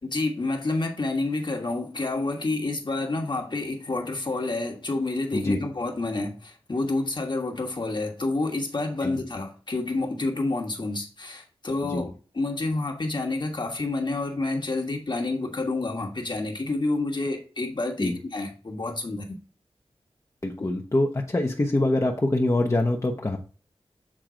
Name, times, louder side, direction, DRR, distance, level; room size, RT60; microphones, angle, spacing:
voice 1, 0.0-19.4, left 2 dB, 45° left, 1.4 m, -29 dB
voice 2, 20.4-23.4, left 2 dB, 30° left, 0.9 m, -24 dB
7.5 x 3.9 x 5.0 m
wide cardioid pair, 80°, 11 cm